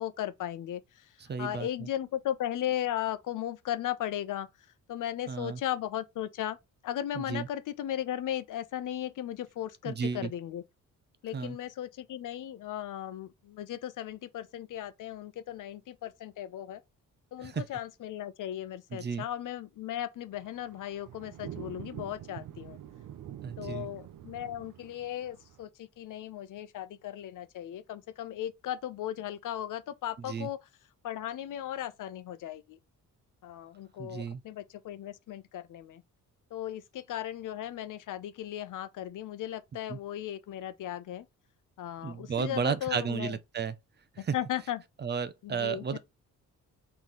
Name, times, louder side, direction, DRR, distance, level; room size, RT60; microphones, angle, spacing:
voice 1, 0.0-6.6 6.8-10.6 11.2-16.8 17.3-22.8 23.6-30.7 31.0-32.8 33.4-36.0 36.5-41.3 41.8-43.4 44.2-44.8 45.4-46.0, left 11 dB, 70° left, 0.8 m, -36 dB
voice 2, 1.3-1.7 5.3-5.6 7.3-7.4 9.9-10.3 11.3-11.5 17.4-17.5 19.0-19.2 23.4-23.9 30.3-30.5 34.0-34.4 39.9-40.0 42.0-43.7 45.0-46.0, right 6 dB, 35° right, 0.6 m, -33 dB
sound 1, 20.3-25.6, right 11 dB, 70° right, 0.7 m, -45 dB
4.1 x 3.9 x 3.1 m
cardioid pair, 145°, 32 cm